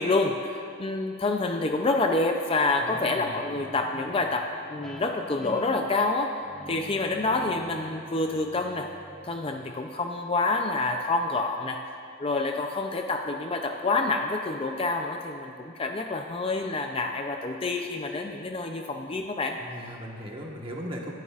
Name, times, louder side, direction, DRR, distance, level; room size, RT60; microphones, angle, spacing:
voice 1, 0.0-6.4 6.7-8.9 9.2-11.8 12.2-19.6, left 3 dB, 25° left, 4 dB, 0.5 m, -27 dB
voice 2, 2.8-3.4 19.6-21.1, equal, 25° right, -1 dB, 1.3 m, -38 dB
Guitar, 2.9-10.1, right 1 dB, 5° left, 1.1 m, -46 dB
20.5 x 11.0 x 2.5 m, 2.8 s
head